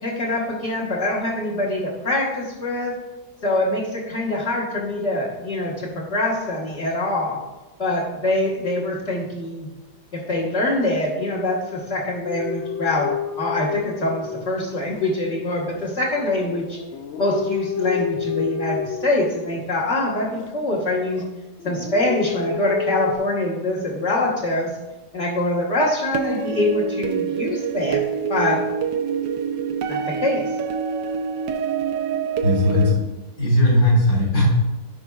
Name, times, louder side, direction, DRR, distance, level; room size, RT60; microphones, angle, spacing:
voice 1, 0.0-2.9 3.4-7.4 7.8-9.7 10.1-13.1 13.4-16.8 17.2-21.2 21.6-24.7 25.1-28.0 28.3-28.6 29.9-30.5, left 2 dB, 45° left, -6 dB, 1.6 m, -24 dB
sound 1, 12.2-15.1 15.7-19.9 20.3-21.3 21.6-23.2, left 5 dB, 85° left, 0.6 m, -30 dB
sound 2, 26.1-32.9, right 6 dB, 85° right, 1.3 m, -26 dB
voice 2, 32.4-33.0 33.4-34.4, left 1 dB, 60° left, -7 dB, 3.6 m, -17 dB
15.5 x 5.3 x 2.3 m, 1.2 s
omnidirectional pair, 1.9 m